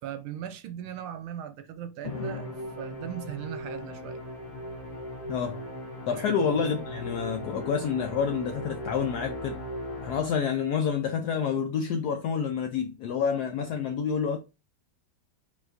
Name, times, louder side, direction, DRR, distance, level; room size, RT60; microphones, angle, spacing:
voice 1, 0.0-4.2 6.3-6.4, right 10 dB, 85° right, 1.4 m, -38 dB
Musical instrument, 2.0-10.6, left 1 dB, 45° left, 1.5 m, -38 dB
voice 2, 5.3-5.6 6.1-9.6 10.0-14.4, left 7 dB, 85° left, 0.8 m, -28 dB
5.1 x 3.5 x 2.5 m
omnidirectional pair, 2.3 m